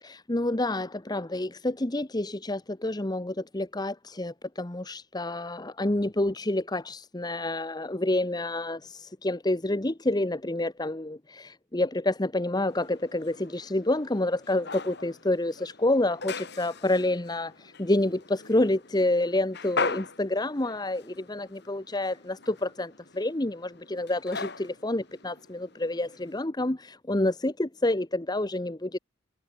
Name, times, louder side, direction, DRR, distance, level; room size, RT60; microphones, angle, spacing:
voice 1, 0.0-29.0, left 1 dB, 20° left, 1.0 m, -28 dB
sound 1, 12.7-26.4, left 4 dB, 55° left, 6.1 m, -40 dB
head